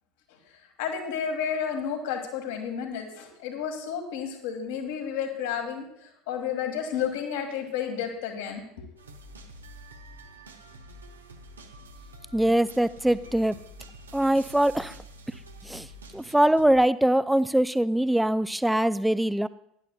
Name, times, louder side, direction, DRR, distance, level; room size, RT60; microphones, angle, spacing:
voice 1, 0.3-8.9, left 7 dB, 60° left, 4 dB, 1.7 m, -32 dB
sound 1, 9.0-16.7, right 1 dB, 80° right, 0.8 m, -47 dB
voice 2, 12.3-13.6 14.1-14.9 15.6-15.9 16.1-19.5, right 1 dB, 5° right, 16 dB, 0.4 m, -23 dB
17.0 x 10.5 x 2.3 m, 0.78 s
figure-of-eight pair, 70°, 0 cm